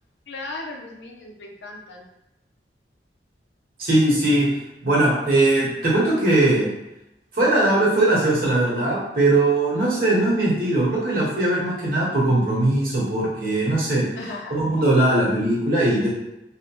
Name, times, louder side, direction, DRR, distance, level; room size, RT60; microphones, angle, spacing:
voice 1, 0.3-2.1 14.2-14.6, left 2 dB, 80° left, 1 dB, 0.5 m, -36 dB
voice 2, 3.8-4.5 4.8-6.7 7.3-14.0 14.5-16.1, right 2 dB, 55° right, -6 dB, 1.0 m, -20 dB
2.8 x 2.0 x 2.9 m, 0.91 s
head